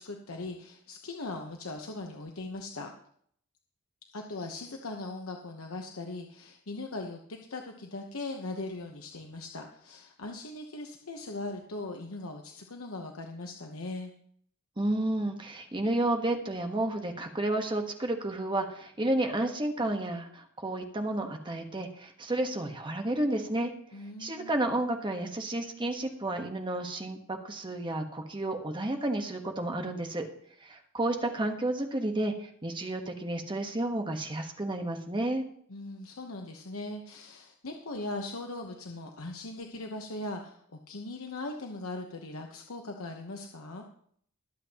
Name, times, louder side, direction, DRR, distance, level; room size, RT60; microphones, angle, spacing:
voice 1, 0.0-2.9 4.1-14.1 23.9-24.5 35.7-43.8, left 2 dB, 80° left, 2 dB, 1.0 m, -39 dB
voice 2, 14.8-23.7 24.2-30.3 30.6-35.4, right 1 dB, 25° right, 4 dB, 1.2 m, -31 dB
21.0 x 8.0 x 3.0 m, 0.63 s
head